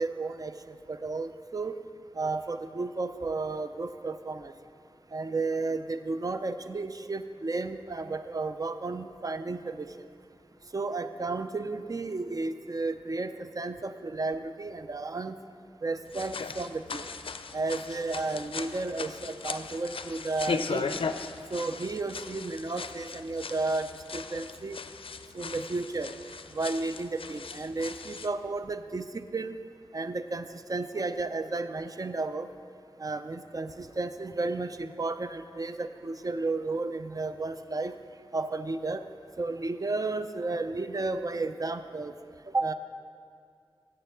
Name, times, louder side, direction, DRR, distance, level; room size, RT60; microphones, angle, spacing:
voice 1, 0.0-1.8 2.1-4.5 5.1-9.9 10.7-15.4 15.8-17.1 17.5-21.0 21.5-24.8 25.3-26.1 26.5-29.6 29.9-32.5 33.0-37.9 38.3-39.0 39.4-42.1 42.5-42.7, right 3 dB, 40° right, 10 dB, 0.5 m, -33 dB
sound 1, 16.1-28.3, left 5 dB, 80° left, 0.4 m, -38 dB
7.7 x 7.6 x 6.9 m, 2.4 s
wide cardioid pair, 50°, 9 cm